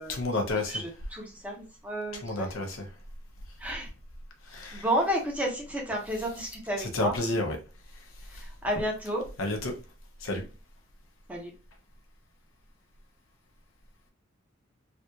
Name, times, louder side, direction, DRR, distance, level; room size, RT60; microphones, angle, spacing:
voice 1, 0.1-0.9 2.1-2.9 4.4-5.0 6.1-7.6 7.9-8.5 9.4-9.7 10.2-10.4, left 2 dB, 75° left, 0.8 m, -32 dB
voice 2, 0.7-2.5 3.6-3.9 4.7-7.1 8.3-9.2 11.3-11.5, equal, 5° right, 0.8 m, -31 dB
3.4 x 2.4 x 2.8 m
head